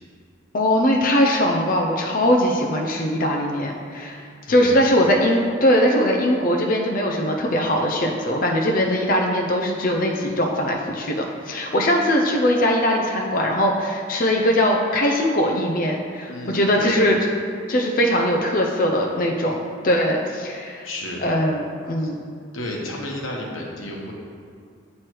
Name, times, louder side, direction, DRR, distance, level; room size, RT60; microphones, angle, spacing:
voice 1, 0.5-4.2 4.5-17.1 17.7-20.9 21.2-22.2, equal, 45° left, 0 dB, 0.5 m, -21 dB
voice 2, 4.4-4.8 16.3-17.0 20.8-21.2 22.0-22.1 22.5-24.1, left 1 dB, 85° left, -2 dB, 1.0 m, -32 dB
7.6 x 3.1 x 4.5 m, 2.2 s
head